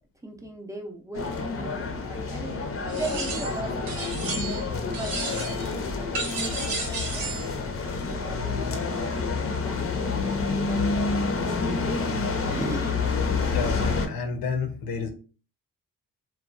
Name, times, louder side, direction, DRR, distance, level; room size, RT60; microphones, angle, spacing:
voice 1, 0.2-2.6 2.9-4.3 4.9-7.5 7.9-11.3 12.4-13.1, right 2 dB, 10° right, 1 dB, 0.5 m, -39 dB
sound 1, 1.1-14.1, left 4 dB, 40° left, 0.6 m, -28 dB
sound 2, 2.9-3.6 3.9-4.7 4.9-5.7 6.1-7.5, right 3 dB, 75° right, 0.9 m, -33 dB
voice 2, 13.4-15.1, left 5 dB, 90° left, 5 dB, 0.7 m, -30 dB
2.9 x 2.2 x 2.4 m, 0.37 s
cardioid pair, 85°, 34 cm